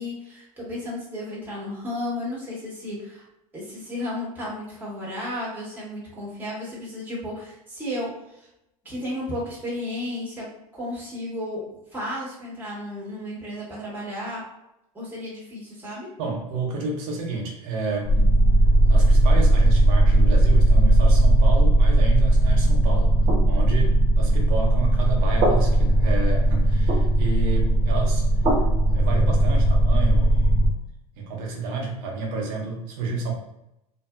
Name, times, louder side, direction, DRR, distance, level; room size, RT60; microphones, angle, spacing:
voice 1, 0.0-3.2 3.5-8.5 8.8-14.4 14.9-16.1, left 1 dB, 10° right, -6 dB, 1.4 m, -33 dB
voice 2, 16.2-18.3 18.9-23.1 23.5-28.2 28.9-30.7 31.2-33.3, right 3 dB, 70° right, 0 dB, 0.9 m, -30 dB
sound 1, 18.0-30.7, right 1 dB, 35° right, 0.9 m, -18 dB
2.6 x 2.5 x 2.3 m, 0.85 s
supercardioid pair, 110°, 19 cm